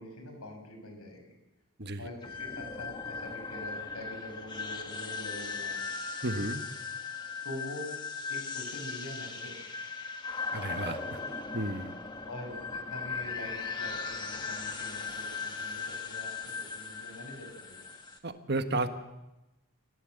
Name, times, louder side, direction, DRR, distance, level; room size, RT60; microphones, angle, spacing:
voice 1, 0.0-1.4 2.0-5.8 7.4-7.9 8.3-9.5 12.3-17.9, left 1 dB, 85° left, 4 dB, 6.2 m, -44 dB
voice 2, 1.8-2.1 6.2-6.6 10.5-11.2 11.5-12.0 18.2-18.9, right 2 dB, 50° right, 8 dB, 1.5 m, -33 dB
sound 1, 2.2-18.2, left 4 dB, 20° left, 1.7 m, -38 dB
28.0 x 16.5 x 7.9 m, 0.99 s
head